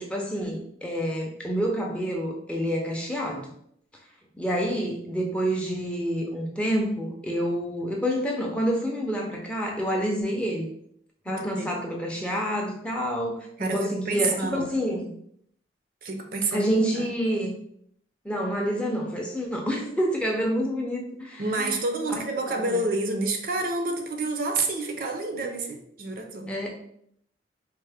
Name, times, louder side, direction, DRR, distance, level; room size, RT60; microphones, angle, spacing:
voice 1, 0.0-3.5 4.4-10.7 11.3-15.1 16.5-17.6 18.2-21.8 22.7-22.9 26.5-26.7, equal, 5° left, -1 dB, 0.4 m, -28 dB
voice 2, 11.3-11.7 13.6-14.7 16.0-17.1 21.4-26.6, right 2 dB, 50° right, 4 dB, 0.5 m, -29 dB
4.2 x 2.1 x 3.3 m, 0.69 s
head